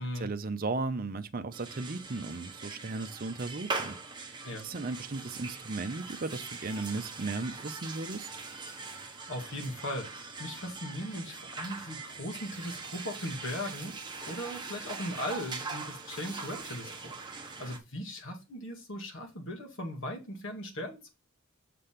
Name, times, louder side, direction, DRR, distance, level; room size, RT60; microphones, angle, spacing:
voice 1, 0.0-4.0 4.6-8.3, right 3 dB, 40° right, 0.6 m, -36 dB
sound 1, 1.5-17.8, right 4 dB, 20° right, 0.9 m, -42 dB
voice 2, 9.3-10.1 10.4-17.2 17.6-21.1, left 1 dB, 60° left, 1.9 m, -38 dB
6.7 x 3.4 x 5.8 m
head